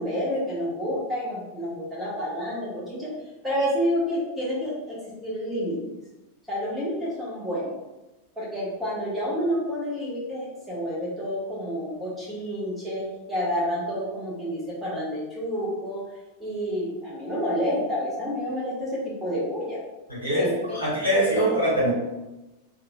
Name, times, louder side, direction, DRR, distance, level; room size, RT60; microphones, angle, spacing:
voice 1, 0.0-3.1 3.4-5.0 5.2-5.8 6.5-7.7 8.3-16.0 16.4-19.8 20.4-20.8, equal, 5° right, -7 dB, 1.4 m, -29 dB
voice 2, 20.1-21.9, equal, 90° right, -7 dB, 1.5 m, -23 dB
3.5 x 3.0 x 2.2 m, 1.0 s
figure-of-eight pair, 90°, 0 cm